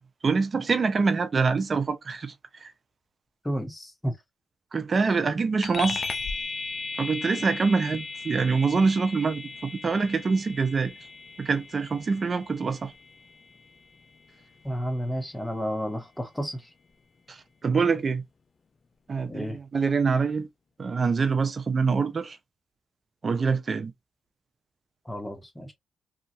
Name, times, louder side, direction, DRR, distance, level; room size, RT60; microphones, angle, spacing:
voice 1, 0.2-2.3 2.6-2.7 4.7-6.1 7.0-10.9 11.4-12.9 17.3-18.2 19.1-20.5 20.8-22.4 23.2-23.9, right 4 dB, 50° right, 0.7 m, -25 dB
voice 2, 3.4-4.1 14.6-16.7 19.2-19.6 25.0-25.7, equal, 15° left, 1.2 m, -31 dB
sound 1, 5.6-15.5, left 4 dB, 50° left, 0.5 m, -37 dB
2.8 x 2.5 x 2.6 m
supercardioid pair, 45°, 0 cm